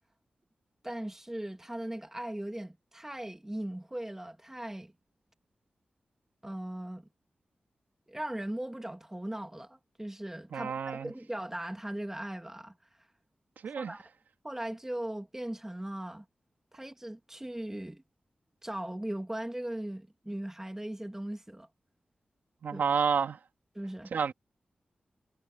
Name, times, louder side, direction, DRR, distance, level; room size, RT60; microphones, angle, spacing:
voice 1, 0.8-4.9 6.4-7.1 8.1-12.7 13.6-14.0 14.4-16.2 16.7-18.0 18.6-21.7 22.7-22.8 23.7-24.1, right 1 dB, 15° right, 2.9 m, -38 dB
voice 2, 10.5-11.1 13.6-13.9 22.6-23.4 24.1-24.3, right 6 dB, 85° right, 2.7 m, -29 dB
cardioid pair, 50°, 3 cm